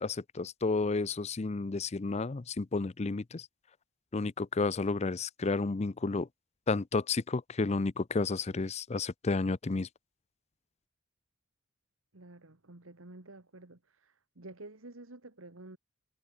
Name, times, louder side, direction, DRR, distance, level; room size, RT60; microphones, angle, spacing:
voice 1, 0.0-3.5 4.1-6.3 6.7-9.9, left 3 dB, 30° left, 0.5 m, -31 dB
voice 2, 12.1-15.8, right 2 dB, 70° right, 1.9 m, -50 dB
head